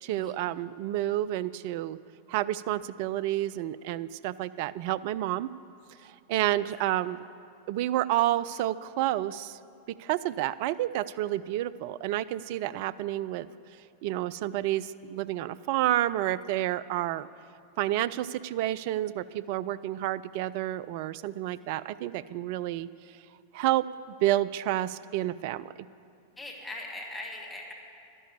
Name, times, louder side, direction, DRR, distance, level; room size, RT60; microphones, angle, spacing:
voice 1, 0.0-2.0 2.3-5.5 6.0-7.2 7.7-9.6 10.0-13.5 14.0-17.3 17.8-22.9 23.5-23.9 24.2-25.7, right 14 dB, 45° right, 17 dB, 0.3 m, -29 dB
voice 2, 26.4-27.7, left 2 dB, 10° left, 0 dB, 1.7 m, -41 dB
12.0 x 11.0 x 6.9 m, 2.4 s
figure-of-eight pair, 90°, 0 cm